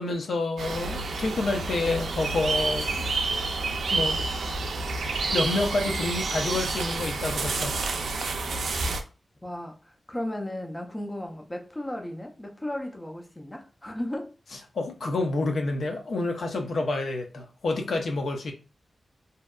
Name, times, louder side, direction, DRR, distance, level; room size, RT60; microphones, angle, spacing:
voice 1, 0.0-2.9 3.2-3.4 3.9-4.3 5.1-7.8 14.7-18.5, left 2 dB, 70° left, 0.5 m, -28 dB
sound 1, 0.6-9.0, right 3 dB, 85° right, 0.4 m, -29 dB
voice 2, 9.4-14.3, left 1 dB, 15° left, 0.4 m, -35 dB
2.7 x 2.2 x 2.2 m
wide cardioid pair, 135°, 0 cm